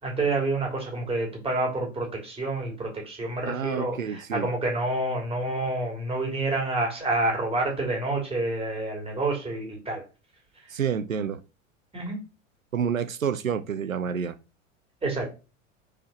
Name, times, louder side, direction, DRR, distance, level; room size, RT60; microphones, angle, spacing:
voice 1, 0.0-10.0 11.9-12.2 15.0-15.3, right 2 dB, 15° right, 3.3 m, -28 dB
voice 2, 3.4-4.5 10.7-11.4 12.7-14.4, right 7 dB, 90° right, 0.6 m, -29 dB
4.8 x 4.5 x 4.3 m
figure-of-eight pair, 85°, 39 cm